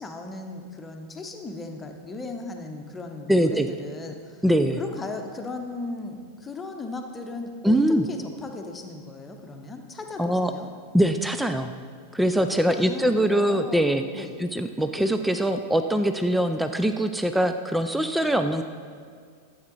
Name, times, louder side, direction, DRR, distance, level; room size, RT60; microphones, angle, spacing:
voice 1, 0.0-4.4 4.8-7.8 8.0-10.7 12.7-14.4, left 3 dB, 15° left, 4 dB, 1.0 m, -37 dB
voice 2, 3.3-3.7 4.4-4.8 7.6-8.1 10.2-10.5 10.9-11.7 12.1-18.6, right 1 dB, 5° right, 8 dB, 0.4 m, -23 dB
12.0 x 8.1 x 4.0 m, 2.1 s
figure-of-eight pair, 90°, 0 cm